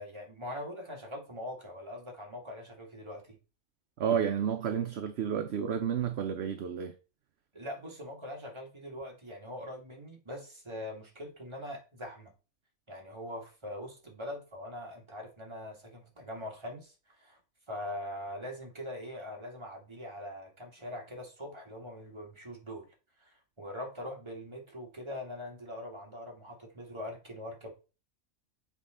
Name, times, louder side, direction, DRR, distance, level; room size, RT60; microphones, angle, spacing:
voice 1, 0.0-3.4 7.5-12.3 12.9-17.4 17.7-22.9 23.2-27.7, left 1 dB, 20° right, 1.9 m, -42 dB
voice 2, 4.0-6.9, right 8 dB, 60° right, 0.8 m, -31 dB
7.7 x 4.6 x 3.7 m
omnidirectional pair, 1.5 m